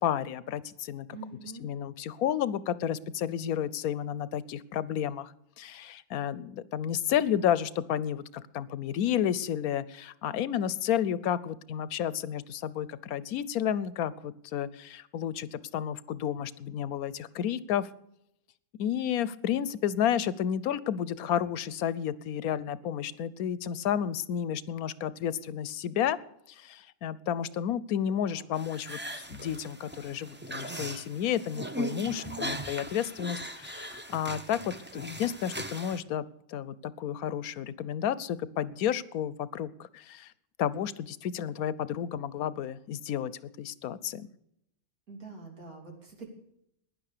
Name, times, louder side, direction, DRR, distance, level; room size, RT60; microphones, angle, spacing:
voice 1, 0.0-1.1 1.6-17.9 18.8-26.2 26.5-36.2 36.5-40.3 40.6-43.3 43.6-44.3, left 9 dB, 85° left, 18 dB, 1.2 m, -31 dB
voice 2, 1.1-1.7 28.3-28.5 32.0-32.6 45.1-46.3, right 3 dB, 85° right, 1 dB, 3.5 m, -44 dB
sound 1, 28.5-36.0, equal, 10° right, 0.7 m, -39 dB
15.5 x 10.5 x 6.7 m, 0.78 s
omnidirectional pair, 1.5 m